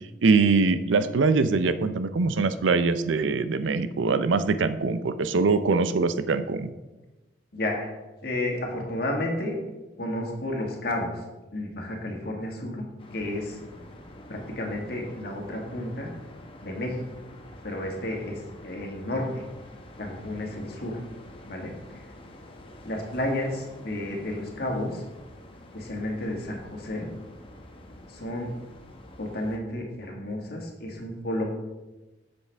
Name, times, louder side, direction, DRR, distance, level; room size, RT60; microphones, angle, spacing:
voice 1, 0.2-6.7, right 4 dB, 85° right, 12 dB, 0.5 m, -23 dB
voice 2, 7.5-7.9 8.2-9.6 10.0-11.2 11.5-12.8 13.1-13.6 14.3-16.1 16.6-17.0 17.6-19.4 20.0-21.0 21.5-22.0 22.8-25.0 25.7-27.1 28.1-28.6 29.2-31.4, left 1 dB, 55° left, 0 dB, 1.7 m, -31 dB
sound 1, 13.0-29.6, left 1 dB, 30° left, 0.9 m, -47 dB
8.3 x 6.9 x 3.4 m, 1.1 s
head